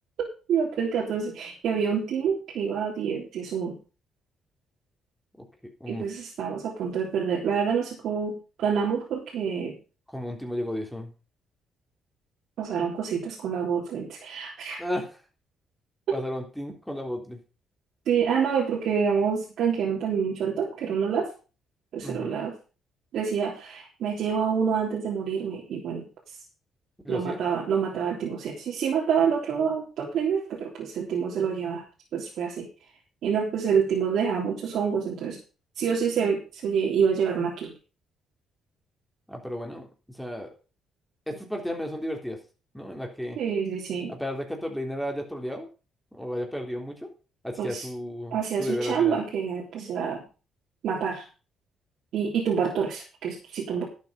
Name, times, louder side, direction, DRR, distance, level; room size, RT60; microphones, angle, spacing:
voice 1, 0.5-3.8 5.9-9.8 12.6-14.8 18.1-21.3 21.9-22.5 23.1-26.1 27.1-31.8 32.1-32.7 33.2-35.4 35.8-37.7 43.4-44.1 47.6-47.9 48.3-50.2 50.8-51.2 52.1-53.8, right 7 dB, 75° right, -3 dB, 3.5 m, -27 dB
voice 2, 10.1-11.1 14.8-15.2 16.1-17.4 22.0-22.4 27.0-27.4 39.3-40.5 41.3-42.4 42.7-43.4 44.1-45.7 46.1-47.1 47.4-49.2 53.7-53.8, equal, ahead, 2 dB, 3.4 m, -33 dB
11.5 x 8.4 x 5.5 m, 0.34 s
cardioid pair, 90°, 0 cm